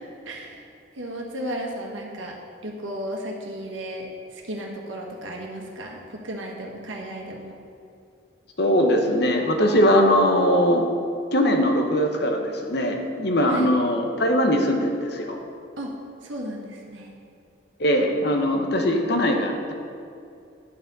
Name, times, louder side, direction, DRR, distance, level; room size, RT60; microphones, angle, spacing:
voice 1, 0.2-0.6 1.0-2.4 2.6-7.5 13.5-13.7 15.8-15.9 16.2-17.1, right 1 dB, 85° right, 0 dB, 1.4 m, -34 dB
voice 2, 8.6-10.9 11.3-15.4 17.8-19.7, equal, 60° left, 3 dB, 1.0 m, -21 dB
10.5 x 6.8 x 4.1 m, 2.5 s
head